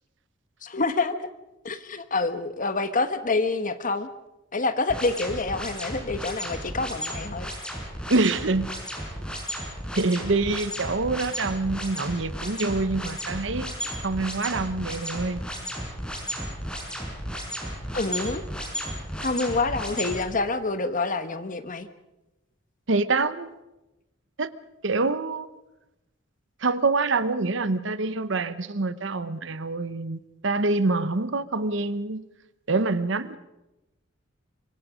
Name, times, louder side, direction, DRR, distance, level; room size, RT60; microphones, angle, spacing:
voice 1, 0.6-1.3 1.6-4.1 4.5-7.5 17.9-18.4 19.2-21.9, left 3 dB, 45° left, 10 dB, 1.3 m, -27 dB
sound 1, 4.9-20.2, equal, 5° left, 5.8 m, -33 dB
voice 2, 8.1-8.7 9.9-13.7 14.0-15.4 22.9-23.5 24.4-24.5 24.8-25.5 26.6-32.3 32.7-33.4, right 3 dB, 70° right, 14 dB, 1.0 m, -26 dB
25.0 x 24.0 x 5.1 m, 0.97 s
head